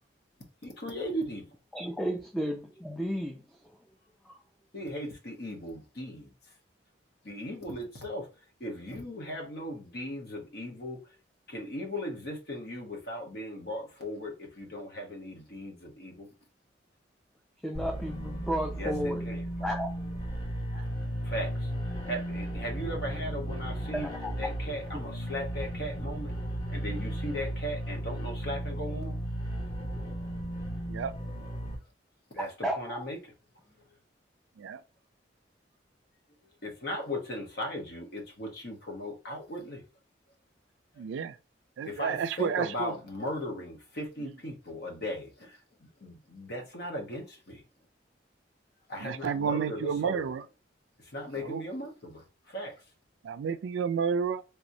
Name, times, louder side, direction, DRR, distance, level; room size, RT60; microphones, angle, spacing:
voice 1, 0.6-1.5 4.7-6.3 7.2-8.3 8.6-11.0 11.5-16.3 18.7-19.7 20.7-21.0 21.2-21.7 22.1-24.1 24.4-26.3 26.7-29.2 32.3-33.3 36.6-39.8 41.8-45.6 46.0-47.6 48.9-50.3 51.0-52.8, equal, 60° left, 1.0 m, -37 dB
voice 2, 1.7-3.4 4.3-4.4 17.6-19.2 19.6-19.9 23.9-24.3 32.4-33.0, equal, ahead, 0.4 m, -33 dB
sound 1, 17.7-31.8, right 1 dB, 25° left, 1.4 m, -35 dB
voice 3, 41.0-41.3 41.8-42.9 44.2-44.3 49.0-50.4 51.5-51.6 53.2-54.4, right 6 dB, 90° right, 0.3 m, -31 dB
3.4 x 3.0 x 2.6 m
head